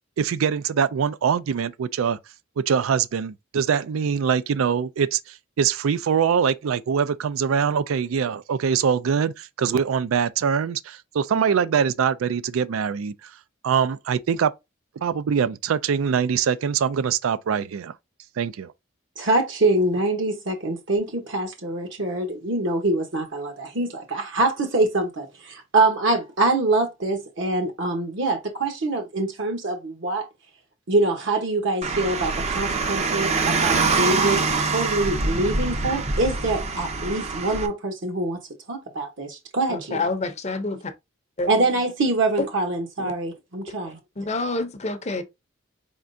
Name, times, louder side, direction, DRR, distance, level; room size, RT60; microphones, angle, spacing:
voice 1, 0.2-2.2 2.6-13.3 13.6-14.5 15.0-17.9 18.4-18.7, right 7 dB, 90° right, 0.4 m, -23 dB
voice 2, 19.2-30.2 30.9-38.4 38.7-40.1 41.5-44.0, right 2 dB, 65° right, 1.0 m, -24 dB
Car, 31.8-37.7, right 4 dB, 35° right, 0.5 m, -24 dB
voice 3, 39.7-40.9 41.4-41.5 42.4-42.5 43.0-43.1 44.2-45.2, left 3 dB, 35° left, 0.6 m, -27 dB
4.3 x 3.6 x 2.6 m
head